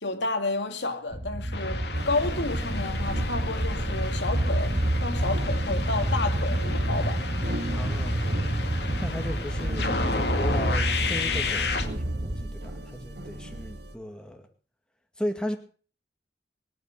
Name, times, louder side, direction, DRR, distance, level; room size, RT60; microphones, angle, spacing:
voice 1, 0.0-7.2, left 3 dB, 90° left, 2.4 m, -31 dB
sound 1, 1.1-12.5, right 1 dB, 30° right, 1.1 m, -28 dB
sound 2, 1.5-11.9, left 4 dB, 70° left, 2.2 m, -33 dB
sound 3, 1.9-13.9, right 1 dB, 65° right, 1.8 m, -38 dB
voice 2, 7.7-8.6 9.0-14.4 15.2-15.6, equal, 5° left, 2.0 m, -36 dB
21.5 x 9.5 x 6.5 m
head